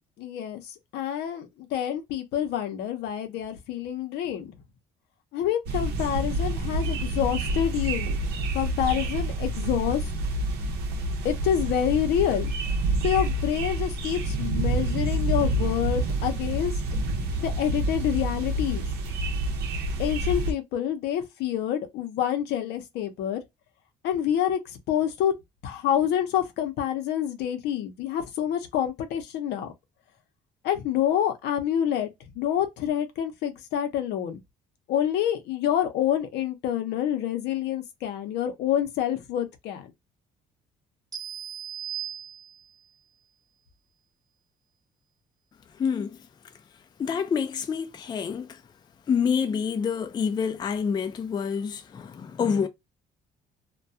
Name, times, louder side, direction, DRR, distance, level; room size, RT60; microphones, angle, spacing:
voice 1, 0.0-4.5 5.3-8.2 8.5-10.0 11.2-12.5 13.0-16.7 17.4-18.9 20.0-23.4 24.0-25.3 25.6-29.7 30.6-32.1 32.4-34.4 34.9-39.9, left 10 dB, 80° left, 0.7 m, -27 dB
sound 1, 5.7-20.5, right 1 dB, 70° right, 0.7 m, -28 dB
sound 2, 41.1-42.9, right 9 dB, 20° right, 0.8 m, -37 dB
voice 2, 45.7-46.2 47.0-48.6 49.1-52.7, left 6 dB, 25° left, 0.3 m, -27 dB
2.3 x 2.2 x 2.6 m
cardioid pair, 110°, 17 cm